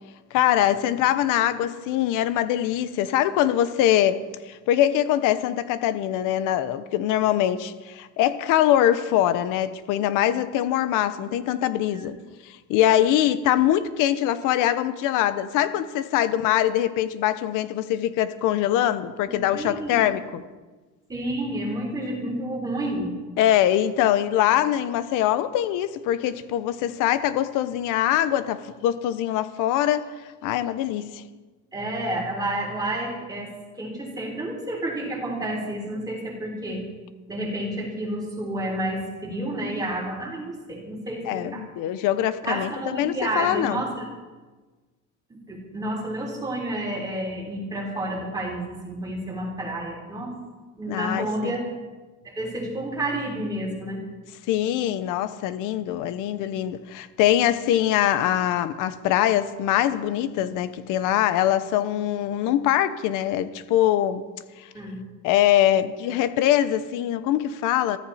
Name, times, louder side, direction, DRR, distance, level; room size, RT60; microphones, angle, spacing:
voice 1, 0.3-12.1 12.7-20.4 23.4-30.1 30.4-31.2 41.3-43.8 50.9-51.5 54.5-64.2 65.2-68.0, left 12 dB, 75° left, 1.0 m, -23 dB
voice 2, 19.3-20.1 21.1-23.1 31.7-33.5 33.8-36.8 37.3-41.6 42.4-44.1 45.3-50.3 50.8-51.7 52.2-54.0 64.7-65.0, right 1 dB, 10° right, 3.8 m, -30 dB
23.5 x 14.5 x 4.2 m
cardioid pair, 175°, 31 cm